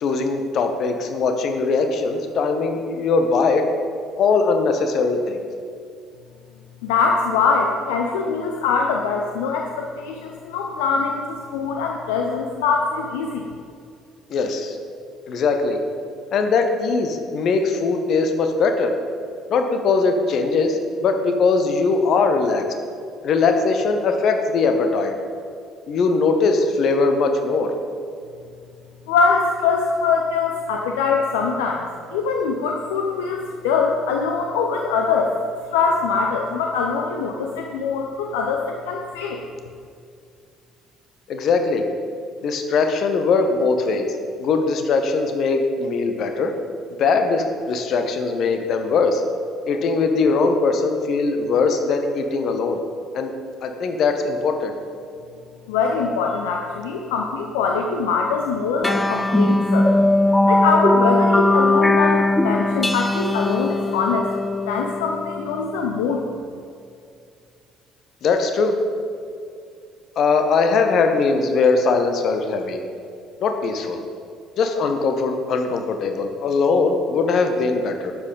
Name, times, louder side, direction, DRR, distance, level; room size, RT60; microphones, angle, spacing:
voice 1, 0.0-3.6 4.2-5.4 14.3-14.8 15.3-15.8 16.3-18.9 19.5-22.7 23.2-25.1 25.9-27.7 41.3-41.8 42.4-44.1 44.4-46.5 47.0-49.2 49.7-52.8 53.1-53.3 53.6-54.7 68.2-68.7 70.2-72.8 73.4-74.0 74.6-78.1, left 4 dB, 50° left, 5 dB, 1.0 m, -20 dB
voice 2, 6.8-13.4 29.1-31.9 32.1-35.3 35.7-39.4 55.7-59.9 60.5-64.3 64.7-66.2, left 5 dB, 70° left, 2 dB, 0.6 m, -23 dB
sound 1, 58.8-65.7, left 2 dB, 10° left, 0.5 m, -19 dB
11.5 x 7.9 x 3.9 m, 2.3 s
figure-of-eight pair, 50°, 0 cm